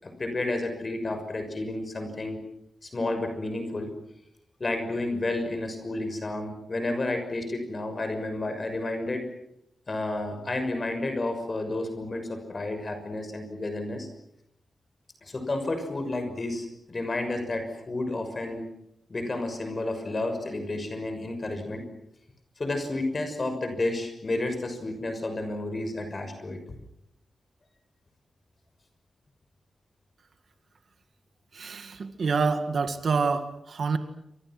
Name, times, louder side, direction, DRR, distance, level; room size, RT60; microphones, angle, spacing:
voice 1, 0.0-2.4 2.8-3.9 4.6-9.3 9.9-14.1 15.2-18.6 19.1-21.8 22.6-26.6, left 2 dB, 30° left, 7 dB, 6.3 m, -31 dB
voice 2, 31.5-34.0, right 4 dB, 55° right, 8 dB, 2.1 m, -27 dB
29.0 x 26.0 x 6.2 m, 0.78 s
wide cardioid pair, 165°, 0 cm